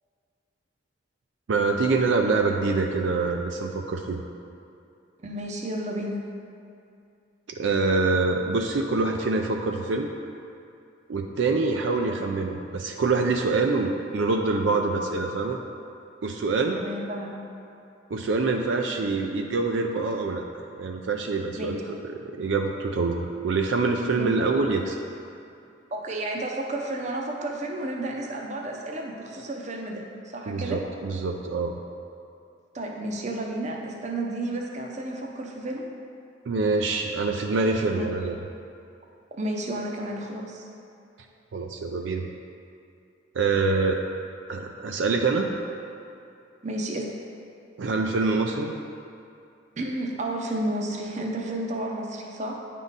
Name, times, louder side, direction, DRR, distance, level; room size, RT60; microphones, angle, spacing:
voice 1, 1.5-4.2 7.6-10.1 11.1-15.6 16.2-16.8 18.1-20.4 20.7-25.0 30.5-31.7 36.5-38.4 41.5-42.3 43.3-44.0 44.5-45.5 47.8-48.7, right 3 dB, 75° right, 3 dB, 0.4 m, -25 dB
voice 2, 5.2-6.2 16.8-17.4 21.6-21.7 24.1-24.3 25.9-30.8 32.7-35.8 37.9-38.1 39.4-40.7 46.6-47.1 49.8-52.5, right 1 dB, 35° right, 0 dB, 0.7 m, -32 dB
9.4 x 3.7 x 4.0 m, 2.6 s
head